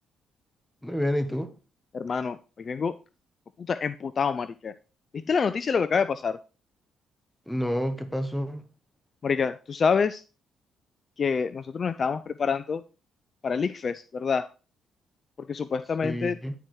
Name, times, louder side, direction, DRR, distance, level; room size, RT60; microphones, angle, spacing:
voice 1, 0.8-1.5 7.5-8.6 16.0-16.5, equal, 5° left, 8 dB, 1.3 m, -29 dB
voice 2, 1.9-2.9 3.7-4.7 5.1-6.4 9.2-10.2 11.2-12.8 13.4-14.5 15.5-16.4, left 5 dB, 45° left, 13 dB, 0.4 m, -27 dB
9.9 x 4.6 x 4.5 m, 0.34 s
cardioid pair, 90°, 0 cm